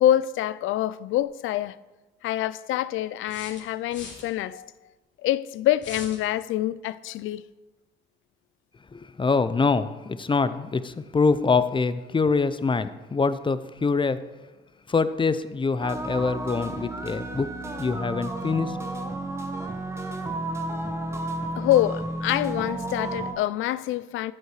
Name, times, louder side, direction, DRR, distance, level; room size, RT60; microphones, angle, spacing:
voice 1, 0.0-1.8 2.2-4.7 5.2-7.4 21.5-24.3, left 13 dB, 85° left, 0.5 m, -25 dB
sound 1, 1.2-1.3 3.3-4.3 5.8-6.2, left 4 dB, 65° left, 3.2 m, -41 dB
voice 2, 8.9-14.3 14.9-18.8, left 4 dB, 25° left, 0.6 m, -25 dB
sound 2, 15.8-23.3, right 2 dB, 15° right, 1.4 m, -32 dB
13.0 x 8.0 x 4.9 m
cardioid pair, 90°, 20 cm